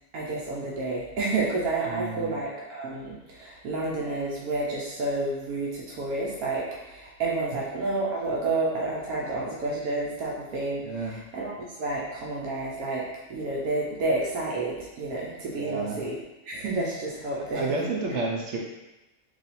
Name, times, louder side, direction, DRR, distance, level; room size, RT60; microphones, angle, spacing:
voice 1, 0.1-16.2 16.4-17.8, right 2 dB, 85° right, -4 dB, 1.2 m, -30 dB
voice 2, 1.9-2.3 10.8-11.2 15.6-16.0 17.5-18.6, right 3 dB, 65° right, -1 dB, 0.8 m, -30 dB
3.2 x 2.7 x 4.1 m, 1.0 s
omnidirectional pair, 1.5 m